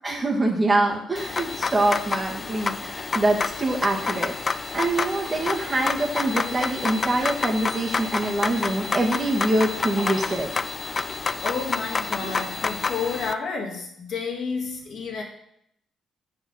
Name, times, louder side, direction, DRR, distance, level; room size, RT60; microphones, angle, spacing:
voice 1, 0.0-4.3 4.7-10.5 12.2-12.4, right 2 dB, 25° right, 0 dB, 1.8 m, -24 dB
sound 1, 1.2-13.3, left 4 dB, 35° left, 0.4 m, -29 dB
voice 2, 11.0-15.2, left 5 dB, 65° left, 1 dB, 1.7 m, -31 dB
6.7 x 4.6 x 6.3 m, 0.73 s
cardioid pair, 90°, 0 cm